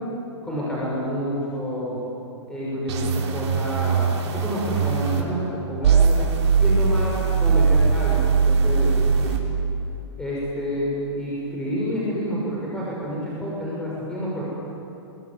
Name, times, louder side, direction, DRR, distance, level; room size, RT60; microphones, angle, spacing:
voice 1, 0.4-2.0 2.5-6.2 6.6-7.1 7.4-9.3 10.2-10.9 11.1-14.4, equal, 5° left, -7 dB, 6.1 m, -28 dB
sound 1, 2.9-5.2 5.8-9.4, right 5 dB, 60° right, 5.1 m, -20 dB
28.0 x 22.0 x 9.7 m, 2.8 s
hypercardioid pair, 155°, 16 cm